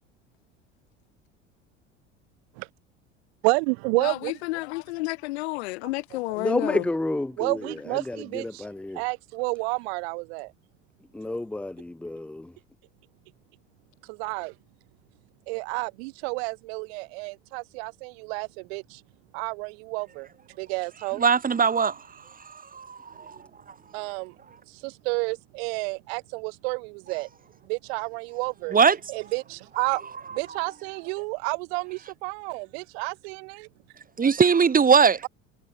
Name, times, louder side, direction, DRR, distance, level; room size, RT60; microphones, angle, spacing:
voice 1, 3.4-4.3 7.4-8.6 8.9-10.5 14.1-14.5 15.5-19.0 19.3-20.3 20.6-21.2 23.9-24.3 24.8-27.3 27.7-28.7 29.1-30.0 30.3-33.7, right 31 dB, 60° right, 1.4 m, -30 dB
voice 2, 4.0-6.9, left 22 dB, 65° left, 1.8 m, -31 dB
voice 3, 6.4-9.0 11.1-12.5, left 2 dB, 5° left, 0.6 m, -30 dB
voice 4, 21.2-22.0 22.7-23.4 28.7-29.0 34.2-35.2, right 6 dB, 25° right, 2.4 m, -20 dB
figure-of-eight pair, 70°, 35 cm